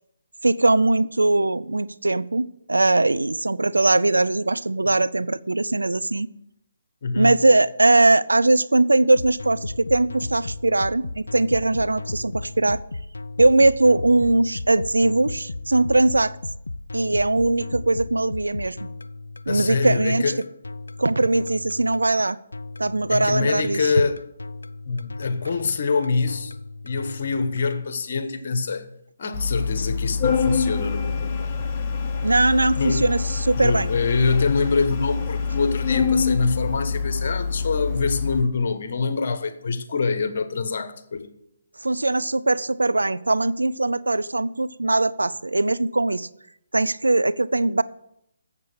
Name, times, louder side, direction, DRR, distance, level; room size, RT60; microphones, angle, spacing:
voice 1, 0.4-6.3 7.2-12.8 13.4-16.4 16.9-18.9 19.5-20.3 21.0-22.4 22.8-23.8 32.2-33.9 41.8-46.3 46.7-47.8, right 2 dB, 90° right, 0.5 m, -20 dB
voice 2, 7.0-7.4 19.5-20.4 23.1-24.2 24.9-26.5 26.8-28.9 29.2-31.5 32.8-33.1 33.6-41.3, left 4 dB, 55° left, 1.2 m, -25 dB
sound 1, 9.2-27.7, left 2 dB, 85° left, 0.4 m, -35 dB
Organ, 29.3-38.4, left 5 dB, 25° left, 1.2 m, -26 dB
7.5 x 7.4 x 8.3 m
figure-of-eight pair, 145°, 0 cm